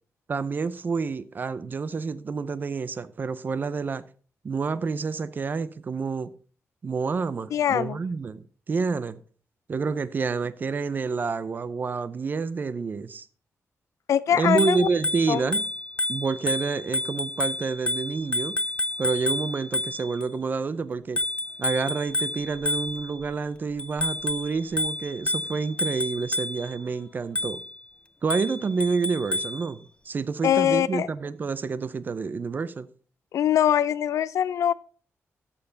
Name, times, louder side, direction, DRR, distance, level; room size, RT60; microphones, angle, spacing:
voice 1, 0.3-4.0 4.4-6.3 6.8-9.2 9.7-13.3 14.3-15.6 16.1-18.5 19.0-21.2 21.6-27.6 28.2-32.9, right 4 dB, 40° right, 0.5 m, -28 dB
voice 2, 7.5-8.0 14.1-14.9 15.3-15.4 30.4-31.1 33.3-34.7, left 10 dB, 85° left, 0.4 m, -22 dB
Bicycle bell, 14.4-20.3 21.2-23.3 23.8-26.8 27.4-27.8 28.3-29.6, left 2 dB, 20° left, 0.4 m, -30 dB
12.5 x 6.9 x 3.9 m
wide cardioid pair, 145°, 5 cm